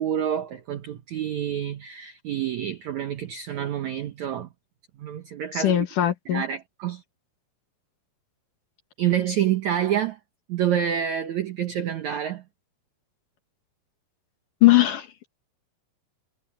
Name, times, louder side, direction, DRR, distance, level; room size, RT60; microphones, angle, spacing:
voice 1, 0.0-4.5 5.0-5.9 6.3-7.0 9.0-10.2 10.5-12.4, right 10 dB, 75° right, 1.7 m, -27 dB
voice 2, 5.5-6.4 14.6-15.3, left 15 dB, 65° left, 2.4 m, -20 dB
omnidirectional pair, 4.8 m